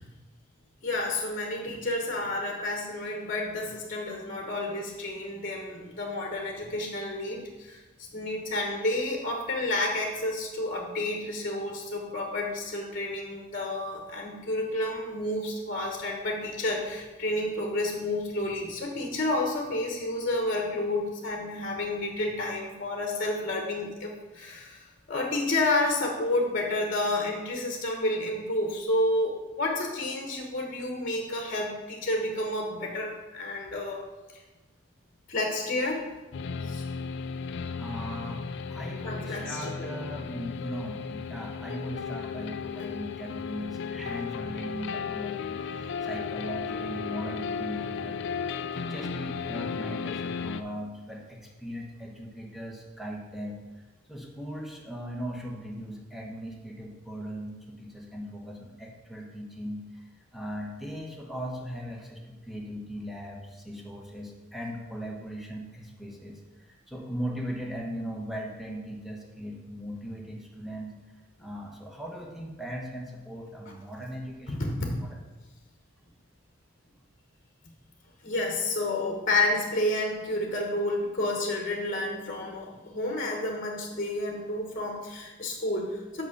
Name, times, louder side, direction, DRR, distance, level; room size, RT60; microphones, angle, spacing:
voice 1, 0.8-7.8 8.1-24.8 25.1-34.0 35.3-36.0 36.6-36.8 39.0-39.9 74.5-75.0 78.2-86.3, left 2 dB, 40° left, 1 dB, 1.1 m, -30 dB
sound 1, 36.3-50.6, left 6 dB, 60° left, 0.4 m, -35 dB
voice 2, 37.8-60.0 60.3-70.9 71.4-75.2, equal, ahead, -2 dB, 1.2 m, -39 dB
6.2 x 5.4 x 6.6 m, 1.1 s
head